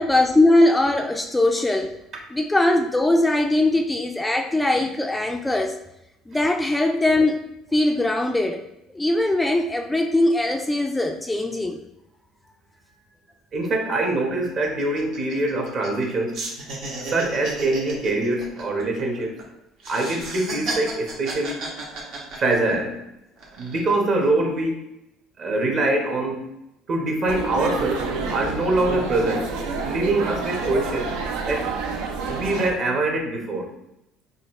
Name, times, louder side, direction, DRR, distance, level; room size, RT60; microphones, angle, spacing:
voice 1, 0.0-1.9 2.3-5.8 6.3-7.4 7.7-8.6 8.9-11.8, left 1 dB, 10° left, 3 dB, 0.3 m, -20 dB
voice 2, 13.5-16.4 17.0-19.4 19.9-21.7 22.4-23.0 23.6-24.8 25.4-26.5 26.9-29.5 29.8-31.1 31.5-31.7 32.2-33.7, right 2 dB, 50° right, 1 dB, 1.0 m, -24 dB
sound 1, 13.5-13.6 13.9-14.1 14.4-16.1 16.3-19.4 19.8-22.9 23.4-23.9, right 2 dB, 70° right, 1.1 m, -33 dB
sound 2, 27.3-32.7, right 4 dB, 85° right, 0.5 m, -28 dB
4.0 x 2.5 x 3.0 m, 0.84 s
supercardioid pair, 95°, 0 cm